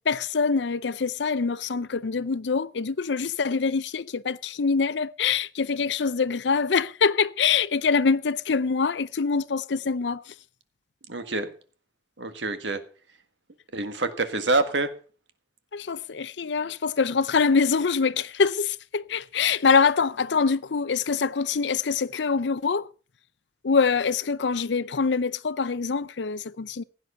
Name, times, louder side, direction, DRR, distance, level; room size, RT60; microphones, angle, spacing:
voice 1, 0.1-10.2 15.7-22.9 23.6-26.8, left 5 dB, 80° left, 0.6 m, -24 dB
voice 2, 11.1-11.5 12.2-12.8 13.7-14.9, right 2 dB, 85° right, 1.7 m, -26 dB
16.0 x 9.6 x 5.7 m
head